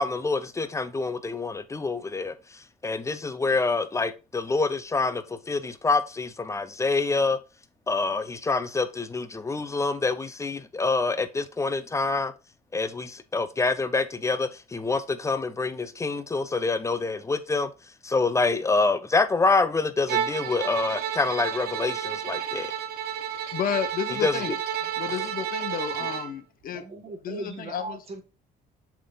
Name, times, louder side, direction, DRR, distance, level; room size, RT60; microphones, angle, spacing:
voice 1, 0.0-2.3 2.8-7.4 7.9-12.3 12.7-17.7 18.0-22.7 24.2-24.3, left 3 dB, 15° left, 0.6 m, -26 dB
Bowed string instrument, 20.1-26.3, right 9 dB, 70° right, 0.8 m, -31 dB
voice 2, 23.5-24.6 25.0-26.8 27.2-28.0, left 9 dB, 55° left, 1.0 m, -31 dB
voice 3, 25.7-26.2 26.7-28.2, right 3 dB, 35° right, 1.8 m, -39 dB
7.2 x 3.6 x 3.9 m
cardioid pair, 110°, 17 cm